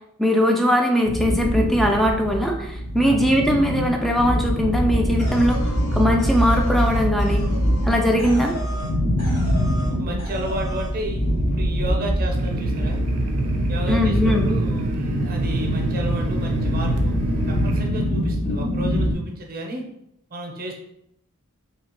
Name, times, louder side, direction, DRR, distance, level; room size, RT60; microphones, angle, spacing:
voice 1, 0.2-7.4 7.8-8.5 13.9-14.5, equal, ahead, 1 dB, 0.3 m, -20 dB
sound 1, 1.1-19.1, equal, 45° left, 0.6 m, -24 dB
sound 2, 5.2-8.9 9.2-9.9 10.2-10.9, equal, 80° left, 1.1 m, -37 dB
voice 2, 10.0-13.0 13.7-17.2 17.5-19.8 20.3-20.8, right 1 dB, 40° right, 1 dB, 0.6 m, -32 dB
sound 3, 12.3-17.9, right 4 dB, 90° right, 0.5 m, -27 dB
2.9 x 2.7 x 2.9 m, 0.79 s
head